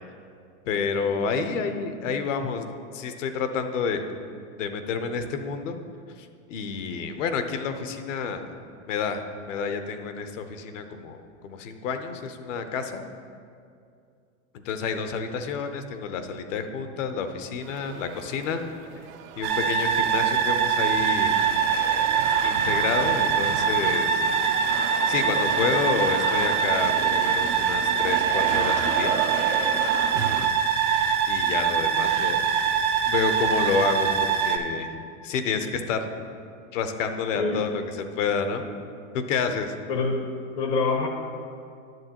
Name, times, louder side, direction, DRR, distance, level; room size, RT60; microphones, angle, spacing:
voice 1, 0.7-4.0 4.6-5.8 6.2-8.5 8.9-11.2 11.4-13.0 14.6-18.6 19.4-21.4 22.4-24.3 25.1-29.2 31.3-32.4 33.1-34.1 34.5-36.1 36.7-38.7 39.1-39.7, left 5 dB, 70° left, 8 dB, 0.8 m, -29 dB
sound 1, 17.6-30.5, right 7 dB, 90° right, 0.7 m, -35 dB
sound 2, 19.4-34.6, right 6 dB, 30° right, 0.5 m, -23 dB
voice 2, 39.9-41.1, left 3 dB, 30° left, 4 dB, 0.5 m, -26 dB
10.5 x 7.1 x 2.9 m, 2.3 s
supercardioid pair, 145°, 39 cm